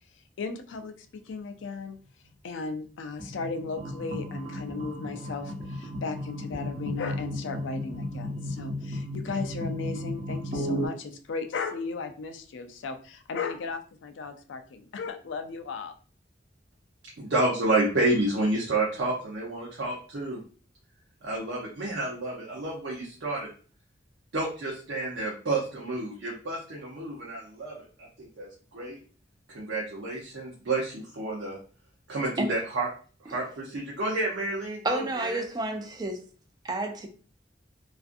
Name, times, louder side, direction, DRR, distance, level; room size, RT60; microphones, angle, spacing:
voice 1, 0.4-2.0 2.4-15.9, left 4 dB, 85° left, 0.4 m, -36 dB
sound 1, 3.2-10.9, left 1 dB, 40° right, 0.7 m, -34 dB
voice 2, 17.2-20.4 21.2-23.5 24.3-28.5 28.7-29.0 29.5-31.6 32.1-32.9 33.2-35.4, right 2 dB, 80° right, 0.6 m, -30 dB
voice 3, 34.8-36.2 36.6-37.1, right 2 dB, 20° right, 0.3 m, -30 dB
2.5 x 2.4 x 2.5 m
head